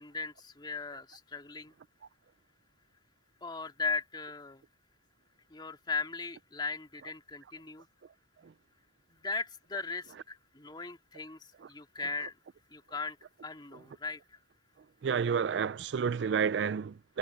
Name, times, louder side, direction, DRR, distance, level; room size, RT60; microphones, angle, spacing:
voice 1, 0.0-1.8 3.4-4.6 5.5-7.9 9.1-12.4 12.7-13.2 13.4-14.4, left 4 dB, 25° left, 2.3 m, -38 dB
voice 2, 15.0-17.2, right 6 dB, 80° right, 0.4 m, -30 dB
head